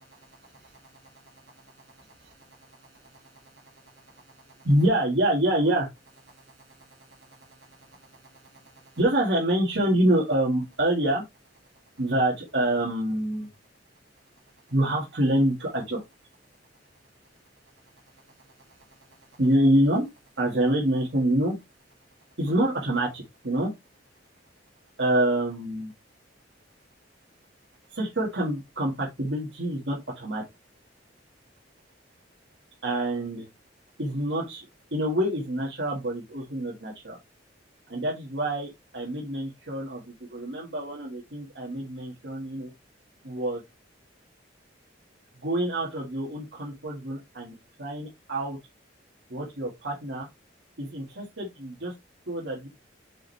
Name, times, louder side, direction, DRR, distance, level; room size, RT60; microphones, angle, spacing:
voice 1, 4.6-5.9 9.0-11.2 12.0-13.5 14.7-16.0 19.4-20.1 20.4-21.5 22.4-23.7 25.0-25.9 28.0-30.4 32.8-33.5 34.0-34.6 34.9-37.2 37.9-40.0 40.3-42.7 43.2-43.6 45.4-48.6 49.3-50.3 50.8-51.9 52.3-52.7, right 1 dB, 60° right, -3 dB, 1.8 m, -26 dB
5.5 x 5.4 x 3.2 m, 0.22 s
head